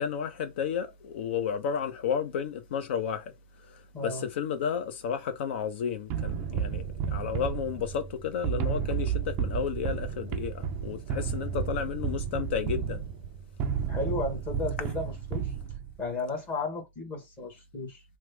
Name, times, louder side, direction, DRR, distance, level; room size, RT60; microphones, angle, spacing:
voice 1, 0.0-3.3 4.0-13.1, left 7 dB, 55° left, 0.8 m, -32 dB
voice 2, 3.9-4.3 13.9-15.5 16.0-18.0, left 3 dB, 20° left, 1.3 m, -34 dB
sound 1, 6.1-16.0, right 8 dB, 30° right, 0.4 m, -32 dB
3.0 x 2.1 x 3.4 m
hypercardioid pair, 150°, 7 cm